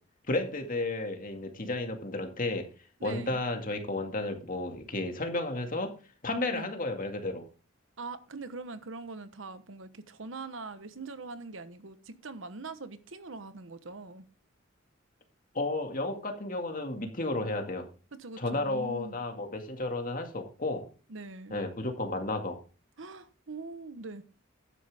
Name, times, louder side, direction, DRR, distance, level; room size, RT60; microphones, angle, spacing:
voice 1, 0.3-2.7 3.0-5.9 6.2-7.5 15.5-17.9 18.4-20.8 21.5-22.6, left 2 dB, 45° left, 2.1 m, -32 dB
voice 2, 3.0-3.4 6.5-6.7 8.0-14.3 18.2-19.2 21.1-21.6 23.0-24.2, right 3 dB, 70° right, 1.1 m, -42 dB
12.0 x 9.8 x 3.5 m
head